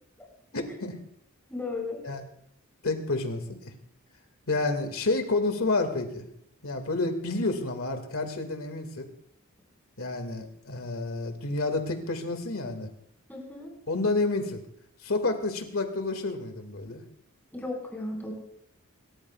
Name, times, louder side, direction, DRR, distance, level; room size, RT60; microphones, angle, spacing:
voice 1, 0.5-1.0 2.0-2.2 2.8-3.7 4.5-6.3 6.6-9.1 10.0-12.9 13.9-14.6 15.0-17.0, left 2 dB, 80° left, 5 dB, 2.1 m, -29 dB
voice 2, 1.5-2.0 13.3-13.7 17.5-18.3, left 2 dB, 10° left, -1 dB, 4.9 m, -35 dB
27.0 x 13.5 x 2.4 m, 0.72 s
head